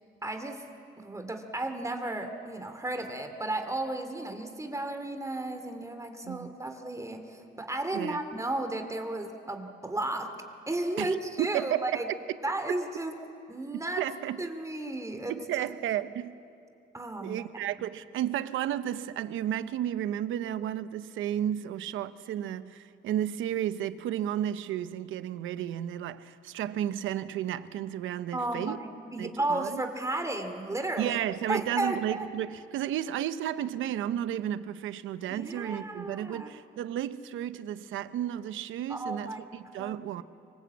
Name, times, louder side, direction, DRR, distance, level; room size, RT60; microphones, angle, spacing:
voice 1, 0.2-0.6 1.0-10.3 10.7-12.1 12.4-13.1 13.5-14.0 14.4-15.7 16.9-17.4 28.3-31.2 31.5-32.3 35.3-36.6 38.9-39.4 39.8-40.2, right 2 dB, 15° right, 2.6 m, -34 dB
voice 2, 11.0-11.9 14.0-14.4 15.3-16.4 17.2-28.8 29.2-29.8 31.0-40.2, right 11 dB, 85° right, 0.9 m, -33 dB
25.5 x 22.5 x 8.5 m
cardioid pair, 90°, 20 cm